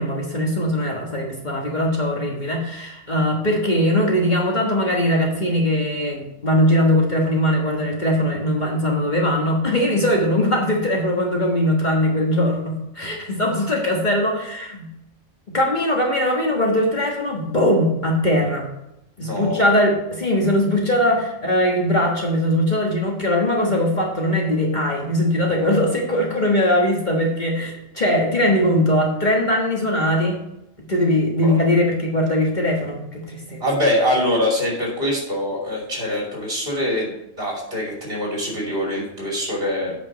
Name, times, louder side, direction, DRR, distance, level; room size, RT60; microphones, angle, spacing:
voice 1, 0.0-14.9 15.5-18.7 19.2-30.4 30.8-33.6, left 1 dB, 35° left, -1 dB, 1.5 m, -20 dB
voice 2, 19.2-19.6 31.4-31.6 33.6-37.1 37.4-40.0, left 1 dB, 50° right, -3 dB, 3.1 m, -23 dB
8.7 x 5.1 x 6.1 m, 0.86 s
omnidirectional pair, 1.3 m